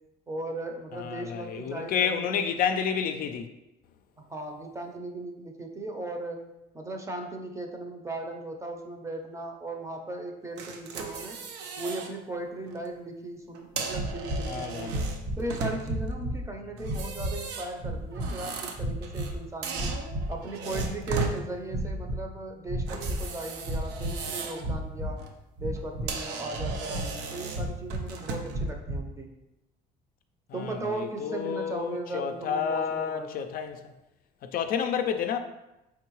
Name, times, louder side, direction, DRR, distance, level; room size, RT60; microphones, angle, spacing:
voice 1, 0.3-2.5 4.2-6.4 6.7-11.4 11.8-15.0 15.4-19.9 20.3-25.2 25.6-29.3 30.5-33.3, right 2 dB, 15° right, 0.6 m, -37 dB
voice 2, 0.9-3.5 14.4-14.9 30.5-33.8 34.5-35.4, left 7 dB, 60° left, 0.4 m, -30 dB
sound 1, 10.6-12.1 12.5-12.8 13.5-16.1 16.8-19.3 19.6-21.4 22.9-24.7 25.1-25.3 25.8-25.9 26.1-28.6, right 4 dB, 85° right, 0.6 m, -36 dB
sound 2, 13.9-14.5 14.9-15.5 15.8-16.5 16.8-17.4 17.8-18.3 18.8-19.4 19.7-20.4 20.7-21.3 21.7-22.2 22.6-23.3 23.6-24.2 24.6-25.2 25.6-26.2 26.5-27.1 27.5-28.1 28.5-29.1, right 1 dB, 55° right, 1.0 m, -32 dB
4.5 x 3.6 x 3.0 m
cardioid pair, 110°, 17 cm